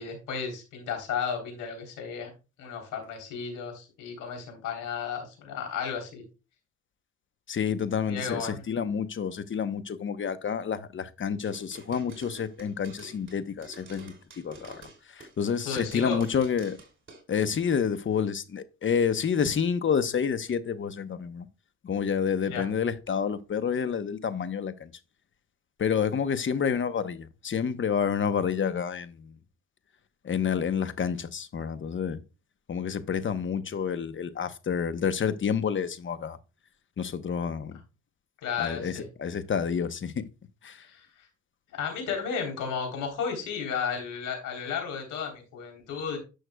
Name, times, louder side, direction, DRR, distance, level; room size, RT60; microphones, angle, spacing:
voice 1, 0.0-2.3 2.6-6.2 8.1-8.6 15.6-16.2 22.5-22.6 38.4-39.1 40.8-41.3 41.7-46.2, left 6 dB, 85° left, 3.5 m, -33 dB
voice 2, 7.5-16.8 17.3-21.5 21.8-24.9 25.8-29.4 30.2-32.2 32.7-36.4 37.0-37.8 38.6-40.3 40.6-40.9, left 7 dB, 40° left, 0.9 m, -29 dB
sound 1, 11.4-15.5 15.8-17.2, right 3 dB, 40° right, 2.7 m, -49 dB
11.0 x 6.3 x 2.3 m
cardioid pair, 90°, 30 cm